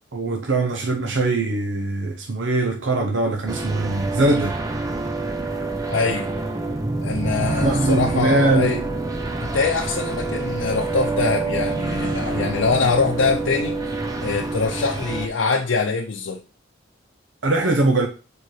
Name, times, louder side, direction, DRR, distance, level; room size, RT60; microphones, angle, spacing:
voice 1, 0.1-4.6 7.4-8.8 17.4-18.1, right 2 dB, 80° right, 0.8 m, -21 dB
sound 1, 3.5-15.3, right 2 dB, 20° right, 0.6 m, -27 dB
voice 2, 5.9-6.3 7.0-8.8 9.4-13.8 14.2-16.4, left 4 dB, 80° left, 0.6 m, -23 dB
6.7 x 4.6 x 3.2 m
head